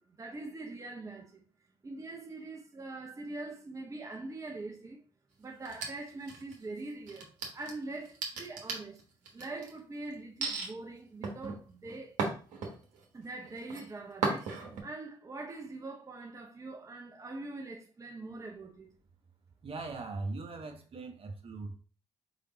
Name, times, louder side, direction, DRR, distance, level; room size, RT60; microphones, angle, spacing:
voice 1, 0.0-1.4 1.8-5.0 5.4-7.3 7.5-9.0 9.3-12.1 13.1-18.9, right 2 dB, 25° right, 0.8 m, -43 dB
sound 1, 5.6-6.6 7.1-9.7 10.4-10.7 11.2-13.0 13.4-13.8 14.2-14.8, right 4 dB, 70° right, 1.1 m, -35 dB
voice 2, 19.6-21.7, right 3 dB, 45° right, 1.1 m, -40 dB
4.9 x 3.5 x 2.8 m
hypercardioid pair, 45°, 14 cm